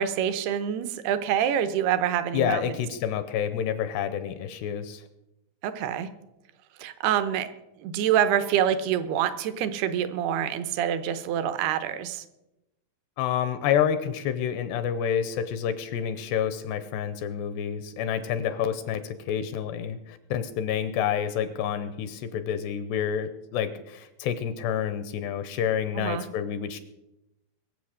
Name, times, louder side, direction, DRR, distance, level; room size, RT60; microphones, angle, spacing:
voice 1, 0.0-2.7 5.6-6.1 6.8-7.5 7.8-12.2 26.0-26.2, right 9 dB, 75° right, 11 dB, 2.5 m, -26 dB
voice 2, 2.3-5.0 13.2-26.8, left 9 dB, 80° left, 11 dB, 2.7 m, -28 dB
22.0 x 7.8 x 6.5 m, 0.93 s
omnidirectional pair, 5.3 m